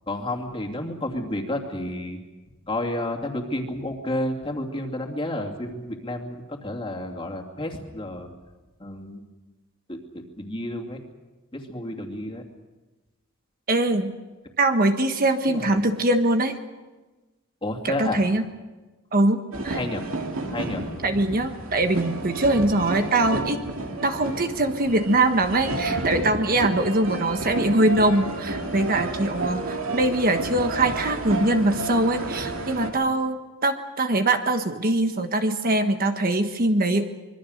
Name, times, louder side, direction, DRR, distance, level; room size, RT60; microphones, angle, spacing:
voice 1, 0.1-2.2 2.7-8.3 8.8-9.2 9.9-11.0 11.5-12.4 15.4-15.8 17.6-18.2 19.7-20.0 20.5-20.9, left 1 dB, 25° left, 2 dB, 2.7 m, -31 dB
voice 2, 13.7-14.1 14.6-16.6 17.8-18.4 19.1-19.8 21.0-23.6 24.0-37.1, right 2 dB, 45° right, 6 dB, 1.3 m, -22 dB
sound 1, 19.5-32.9, right 2 dB, 70° right, 2.6 m, -31 dB
25.5 x 22.5 x 6.5 m, 1.2 s
head